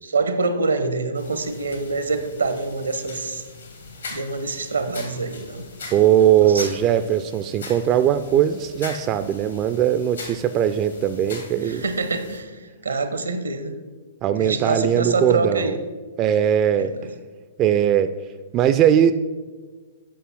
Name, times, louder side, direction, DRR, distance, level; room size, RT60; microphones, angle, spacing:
voice 1, 0.0-3.5 4.1-5.6 6.4-6.7 11.6-13.8 14.4-15.8 16.8-16.9, right 3 dB, 80° right, 9 dB, 0.9 m, -25 dB
sound 1, 1.1-12.4, left 3 dB, 75° left, 2.1 m, -40 dB
voice 2, 5.9-11.8 14.2-15.8 16.2-16.9 17.6-18.1 18.5-19.1, right 10 dB, 30° right, 11 dB, 0.4 m, -19 dB
8.6 x 5.5 x 5.7 m, 1.4 s
figure-of-eight pair, 110°, 0 cm